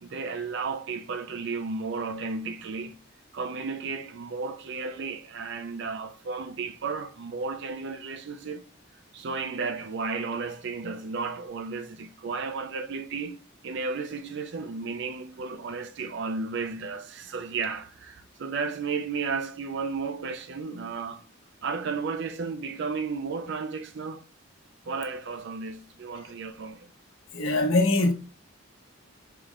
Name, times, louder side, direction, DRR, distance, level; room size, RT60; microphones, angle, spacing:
voice 1, 0.0-3.0 3.3-8.7 9.1-13.4 13.6-21.2 21.6-24.2 24.9-26.9, right 4 dB, 55° right, 0.4 m, -33 dB
voice 2, 27.3-28.1, left 2 dB, 75° left, 0.9 m, -22 dB
4.9 x 3.1 x 2.5 m
head